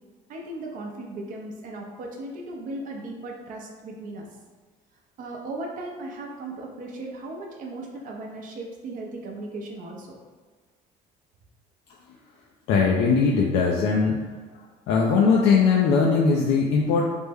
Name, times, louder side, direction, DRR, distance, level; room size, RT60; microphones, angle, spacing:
voice 1, 0.3-4.3 5.2-10.2, right 2 dB, 50° right, 0 dB, 0.5 m, -37 dB
voice 2, 12.7-14.2 14.9-17.0, left 5 dB, 80° left, -2 dB, 0.4 m, -20 dB
3.3 x 2.1 x 3.3 m, 1.5 s
cardioid pair, 110°, 17 cm